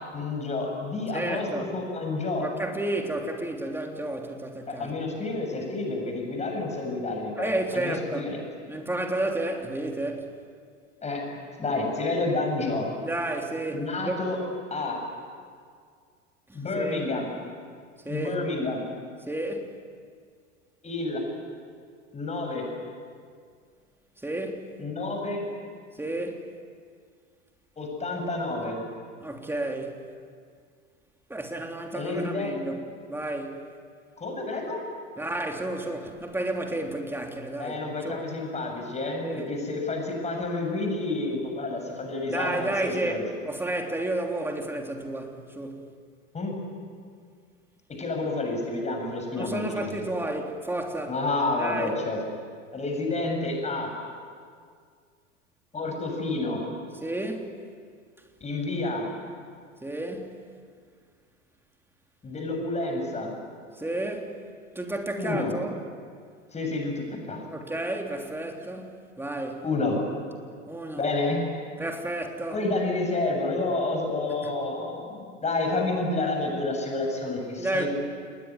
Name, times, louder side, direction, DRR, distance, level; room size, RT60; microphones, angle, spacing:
voice 1, 0.1-2.5 4.7-8.4 11.0-12.9 13.7-14.4 14.7-15.0 16.5-17.3 18.1-18.8 20.8-21.2 22.1-22.7 24.8-25.4 27.8-28.8 31.9-32.5 34.2-34.8 37.6-43.2 46.3-46.5 48.0-50.0 51.1-52.2 52.7-53.9 55.7-56.6 58.4-59.1 62.2-63.3 65.2-65.5 66.5-67.4 69.6-70.0 71.0-71.4 72.5-77.9, left 2 dB, 20° left, 2 dB, 7.4 m, -29 dB
voice 2, 1.1-1.7 2.4-4.9 7.4-8.3 8.7-10.3 13.0-14.2 16.5-17.0 18.0-18.4 19.3-19.7 24.2-24.7 26.0-26.4 29.2-30.0 31.3-32.8 33.1-33.6 35.2-37.8 38.0-38.2 39.2-39.5 42.3-45.9 49.3-51.1 51.6-51.9 57.0-57.5 59.8-60.4 63.8-64.3 64.7-65.8 67.5-69.6 70.7-71.0 71.8-72.6 77.6-77.9, right 1 dB, 5° right, 3 dB, 3.2 m, -31 dB
28.0 x 20.0 x 9.8 m, 2.1 s
figure-of-eight pair, 85°, 37 cm